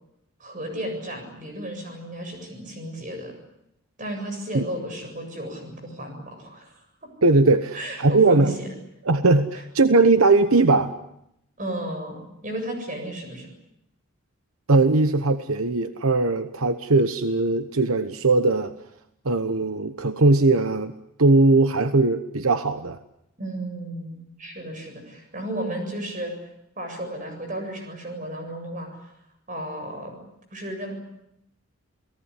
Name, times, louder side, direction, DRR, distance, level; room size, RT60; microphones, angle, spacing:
voice 1, 0.4-3.3 4.0-6.9 7.7-8.7 11.6-13.5 23.4-26.3 26.8-29.1 29.5-30.2 30.5-30.9, right 1 dB, 35° right, 5 dB, 7.6 m, -33 dB
voice 2, 7.2-8.5 9.1-10.9 14.7-18.7 19.2-20.9 21.2-23.0, right 3 dB, 80° right, 10 dB, 1.1 m, -19 dB
29.0 x 19.0 x 9.9 m, 0.79 s
head